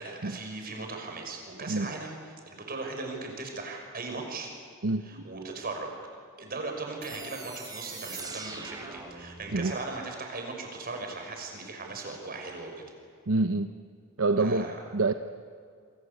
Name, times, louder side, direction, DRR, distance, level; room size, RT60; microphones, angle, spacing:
voice 1, 0.0-2.2 2.5-4.5 5.0-5.9 6.4-12.8 14.4-14.8, right 3 dB, 45° right, 3 dB, 5.8 m, -38 dB
voice 2, 4.8-5.2 9.5-9.7 13.3-13.7 14.2-15.1, right 3 dB, 70° right, 8 dB, 0.9 m, -27 dB
sound 1, 7.0-9.9, right 3 dB, 20° right, 3.8 m, -42 dB
28.0 x 24.5 x 8.4 m, 2.2 s
head